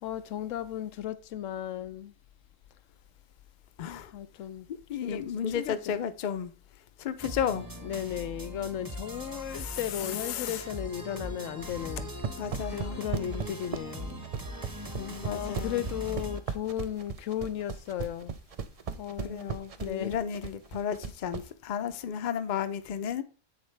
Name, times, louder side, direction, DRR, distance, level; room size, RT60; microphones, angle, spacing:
voice 1, 0.0-2.1 4.1-4.7 5.0-5.9 7.7-12.1 12.7-14.3 14.6-14.7 15.2-18.4 19.0-19.5 19.8-20.2, left 11 dB, 90° left, 1.0 m, -35 dB
voice 2, 3.8-4.1 4.9-6.5 7.0-7.7 9.5-10.6 12.4-13.0 15.0-15.8 19.2-23.2, left 8 dB, 50° left, 0.6 m, -33 dB
sound 1, 7.2-16.4, equal, 20° right, 1.0 m, -40 dB
sound 2, 11.9-21.5, right 6 dB, 50° right, 0.4 m, -36 dB
8.1 x 6.8 x 3.3 m
omnidirectional pair, 1.3 m